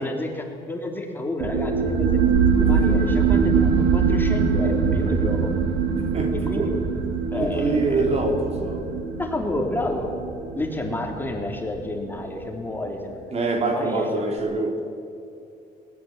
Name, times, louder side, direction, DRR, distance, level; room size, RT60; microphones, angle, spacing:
voice 1, 0.0-2.2 2.5-5.5 6.5-6.8 7.3-8.1 9.2-10.1 10.6-13.3 13.7-14.7, left 2 dB, 10° left, 1 dB, 3.6 m, -30 dB
sound 1, 1.4-12.5, right 6 dB, 85° right, 2.4 m, -23 dB
voice 2, 2.7-3.1 6.0-6.7 7.3-8.9 13.3-14.8, right 3 dB, 40° right, 3 dB, 3.0 m, -25 dB
20.5 x 17.5 x 9.0 m, 2.6 s
cardioid pair, 110°, 17 cm